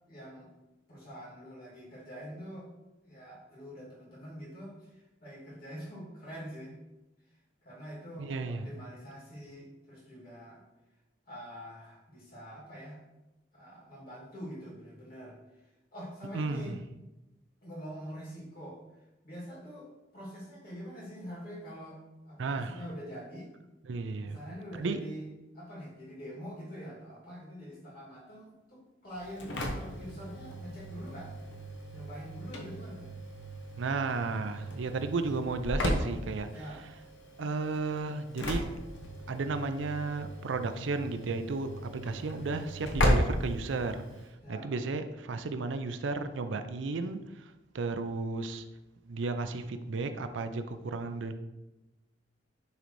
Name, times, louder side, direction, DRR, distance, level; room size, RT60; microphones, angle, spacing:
voice 1, 0.1-0.5 0.9-2.7 3.0-6.7 7.6-10.6 11.3-13.0 13.5-15.4 15.9-16.7 17.6-18.8 19.2-22.0 22.3-23.5 24.2-25.2 25.5-31.3 31.9-33.1 36.5-36.8 42.4-42.6 44.4-44.7, equal, 50° left, -6 dB, 2.5 m, -45 dB
voice 2, 8.2-8.7 16.3-16.8 22.4-22.8 23.8-24.4 24.8-25.0 33.8-36.5 37.4-38.7 39.3-44.0 44.5-48.7 49.1-51.3, right 3 dB, 75° right, 9 dB, 0.5 m, -33 dB
Engine / Slam, 29.2-44.3, equal, 75° left, 1.0 m, -35 dB
10.0 x 3.9 x 3.2 m, 1.0 s
head